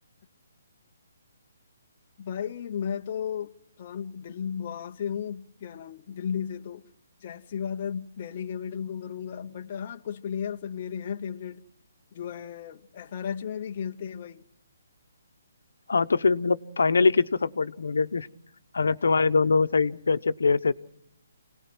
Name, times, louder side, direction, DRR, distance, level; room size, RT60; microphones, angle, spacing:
voice 1, 2.2-3.5 3.8-6.9 7.2-11.6 12.1-14.4, left 8 dB, 25° left, 0.7 m, -34 dB
voice 2, 15.9-18.3 18.7-20.7, left 4 dB, 85° left, 1.0 m, -23 dB
28.5 x 18.5 x 6.1 m
hypercardioid pair, 180°, 0 cm